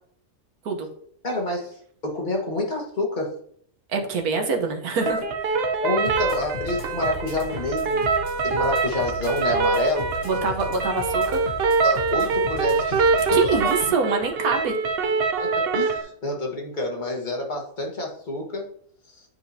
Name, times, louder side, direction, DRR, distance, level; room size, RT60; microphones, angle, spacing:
voice 1, 1.2-1.7 2.0-3.3 5.8-8.1 8.4-10.1 11.8-13.4 15.4-18.7, left 2 dB, 35° left, 0 dB, 1.4 m, -28 dB
voice 2, 3.9-5.2 10.2-11.4 13.3-14.7, right 4 dB, 85° right, 3 dB, 1.5 m, -25 dB
sound 1, 5.0-16.0, right 4 dB, 50° right, 0.8 m, -24 dB
sound 2, 6.1-13.9, left 4 dB, 55° left, 1.2 m, -37 dB
9.8 x 4.5 x 2.7 m, 0.63 s
omnidirectional pair, 1.6 m